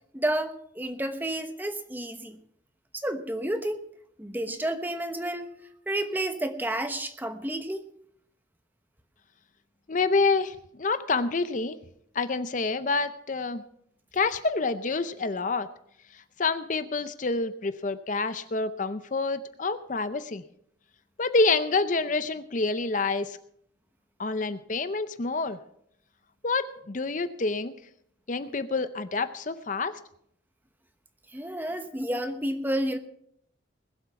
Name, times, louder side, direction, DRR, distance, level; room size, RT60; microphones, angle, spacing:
voice 1, 0.1-2.4 2.9-3.8 4.2-5.5 5.9-7.8 31.3-33.0, right 1 dB, 10° right, 8 dB, 1.0 m, -30 dB
voice 2, 9.9-11.8 12.1-13.6 14.1-15.7 16.4-20.4 21.2-23.4 24.2-25.6 26.4-27.7 28.3-30.0, left 3 dB, 40° left, 12 dB, 0.6 m, -27 dB
21.0 x 8.0 x 5.8 m, 0.70 s
head